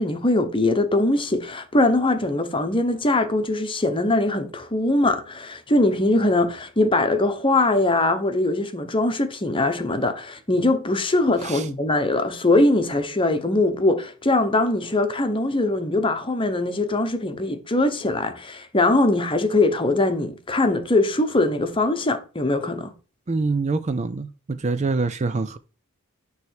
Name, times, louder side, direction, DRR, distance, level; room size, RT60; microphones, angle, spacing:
voice 1, 0.0-22.9, left 2 dB, 25° left, 0.9 m, -21 dB
voice 2, 23.3-25.6, right 3 dB, 30° right, 0.4 m, -25 dB
9.7 x 3.3 x 6.5 m
head